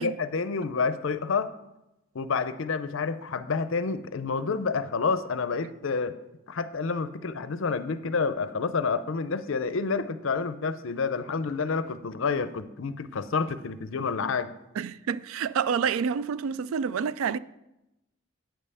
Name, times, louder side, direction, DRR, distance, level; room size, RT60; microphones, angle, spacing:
voice 1, 0.0-1.5 2.1-6.1 6.5-14.5, left 4 dB, 70° left, 0.5 m, -29 dB
voice 2, 14.8-17.4, right 6 dB, 80° right, 0.3 m, -28 dB
8.8 x 5.5 x 6.8 m
head